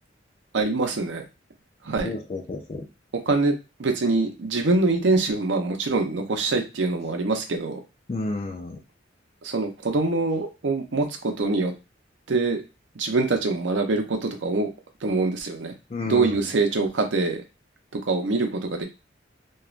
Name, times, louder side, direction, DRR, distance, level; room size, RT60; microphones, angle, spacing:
voice 1, 0.5-1.2 1.8-2.1 3.1-3.5 3.8-7.8 9.4-11.7 12.3-12.6 13.0-14.7 15.0-15.7 16.1-17.4 17.9-18.9, right 3 dB, 70° right, 4 dB, 0.6 m, -24 dB
voice 2, 2.0-2.9 8.1-8.8 15.9-16.5, left 2 dB, 30° left, 1 dB, 0.4 m, -31 dB
3.1 x 2.3 x 2.4 m, 0.26 s
head